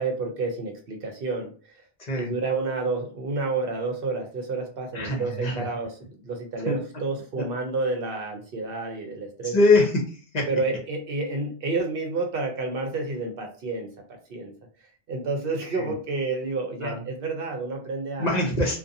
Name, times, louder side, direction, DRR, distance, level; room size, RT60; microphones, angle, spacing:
voice 1, 0.0-1.5 2.2-5.9 6.2-9.5 10.5-13.9 14.3-14.5 15.1-18.4, right 3 dB, 65° right, 3 dB, 0.8 m, -29 dB
voice 2, 2.0-2.3 4.9-5.7 6.7-6.8 9.5-10.5 15.8-15.9 16.8-17.0 18.2-18.8, left 2 dB, 45° left, -1 dB, 0.7 m, -23 dB
2.5 x 2.2 x 2.6 m, 0.40 s
omnidirectional pair, 1.1 m